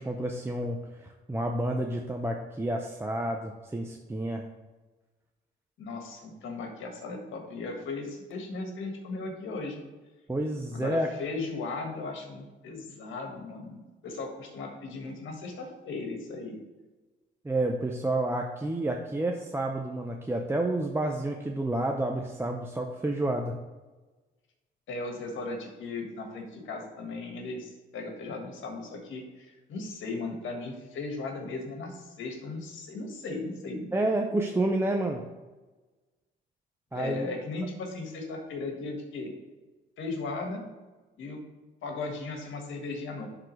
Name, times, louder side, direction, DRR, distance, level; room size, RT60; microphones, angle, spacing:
voice 1, 0.0-4.4 10.3-11.1 17.4-23.5 33.9-35.2 36.9-37.3, right 1 dB, 10° right, 2 dB, 0.6 m, -30 dB
voice 2, 5.8-9.8 10.7-16.6 24.9-33.9 36.9-39.3 40.0-40.7 41.2-41.4 41.8-43.3, left 3 dB, 75° left, 2 dB, 1.6 m, -37 dB
11.5 x 3.9 x 3.2 m, 1.2 s
cardioid pair, 90°, 20 cm